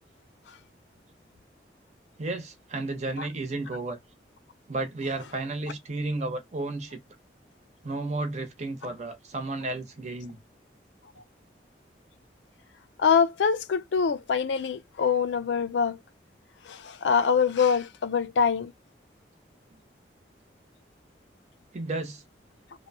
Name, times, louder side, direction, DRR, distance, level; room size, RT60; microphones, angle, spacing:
voice 1, 2.2-4.0 4.7-7.0 7.8-10.4 21.7-22.2, right 2 dB, 40° right, 0.8 m, -32 dB
voice 2, 13.0-16.0 16.7-18.7, left 6 dB, 85° left, 0.4 m, -24 dB
2.9 x 2.2 x 2.7 m
head